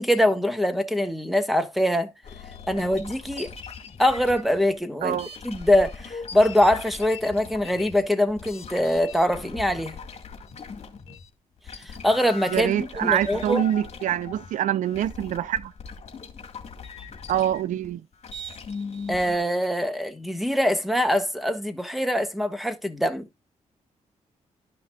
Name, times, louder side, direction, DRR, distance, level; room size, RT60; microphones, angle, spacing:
voice 1, 0.0-2.1 2.7-3.5 4.0-5.2 5.4-10.0 11.8-13.6 19.1-23.3, left 1 dB, ahead, 1.5 m, -23 dB
sound 1, 2.2-11.3 11.6-19.4, left 5 dB, 55° left, 2.0 m, -40 dB
voice 2, 12.5-15.7 17.3-18.0, right 11 dB, 80° right, 0.4 m, -25 dB
12.5 x 5.8 x 2.3 m
cardioid pair, 80°, 13 cm